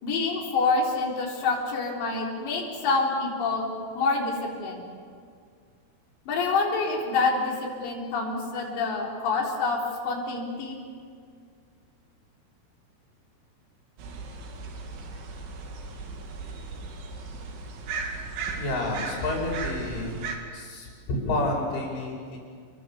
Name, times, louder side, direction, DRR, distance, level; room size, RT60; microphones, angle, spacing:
voice 1, 0.0-3.7 4.0-4.8 6.3-9.8 10.0-10.8, left 4 dB, 65° left, -2 dB, 6.0 m, -27 dB
sound 1, 14.0-20.4, right 4 dB, 80° right, 4.9 m, -36 dB
voice 2, 18.5-20.3 20.5-22.4, left 2 dB, 85° left, -2 dB, 7.4 m, -30 dB
29.0 x 23.0 x 7.2 m, 2.1 s
omnidirectional pair, 5.4 m